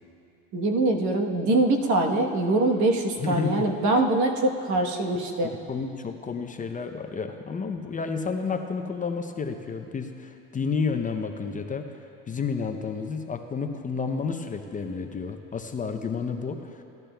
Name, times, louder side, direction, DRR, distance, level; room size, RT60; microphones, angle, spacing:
voice 1, 0.5-5.5, right 2 dB, 60° right, 3 dB, 1.2 m, -23 dB
voice 2, 3.2-3.7 5.4-11.9 12.3-16.8, left 5 dB, 25° left, 5 dB, 0.6 m, -31 dB
17.0 x 12.0 x 2.3 m, 2.7 s
supercardioid pair, 100°, 32 cm